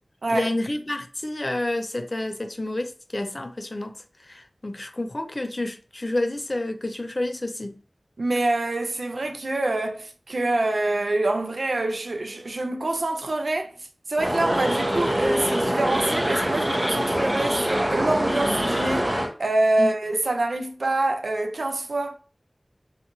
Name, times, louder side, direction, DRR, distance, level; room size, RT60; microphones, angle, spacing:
voice 1, 0.3-4.0 4.3-7.7 17.0-17.1 19.8-19.9, left 1 dB, 45° left, 0.4 m, -29 dB
voice 2, 8.2-13.7 14.1-22.1, right 2 dB, 85° right, 0.4 m, -25 dB
sound 1, 14.2-19.3, equal, 20° right, 0.7 m, -24 dB
2.5 x 2.4 x 2.8 m
wide cardioid pair, 45°, 0 cm